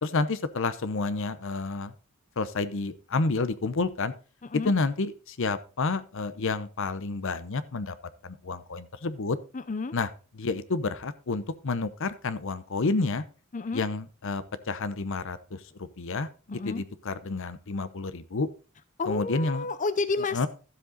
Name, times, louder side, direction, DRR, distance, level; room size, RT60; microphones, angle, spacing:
voice 1, 0.0-1.9 2.4-4.1 4.6-7.9 8.2-9.4 9.9-10.1 10.3-13.2 13.7-18.5 19.1-19.7 20.3-20.5, left 3 dB, 65° left, 14 dB, 0.8 m, -30 dB
voice 2, 9.5-9.9 13.5-13.8 16.5-16.8 19.0-20.5, left 3 dB, 35° left, 12 dB, 0.6 m, -30 dB
13.0 x 7.6 x 3.9 m, 0.36 s
head